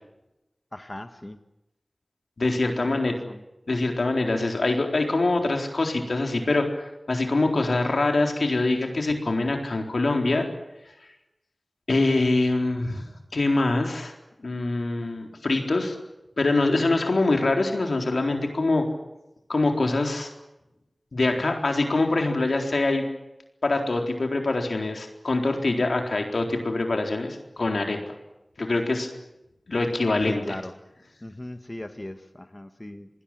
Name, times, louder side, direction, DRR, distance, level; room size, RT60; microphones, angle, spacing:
voice 1, 0.7-1.4 2.8-3.4 30.3-30.7 31.2-33.1, left 1 dB, 30° left, 8 dB, 1.5 m, -38 dB
voice 2, 2.4-3.1 3.7-10.5 11.9-13.1 13.3-14.1 14.4-15.9 16.4-18.8 19.5-20.3 21.1-23.0 23.6-28.0 28.6-29.1 29.7-30.6, left 2 dB, 90° left, 3 dB, 4.1 m, -24 dB
28.0 x 20.0 x 7.6 m, 0.93 s
wide cardioid pair, 55°, 0 cm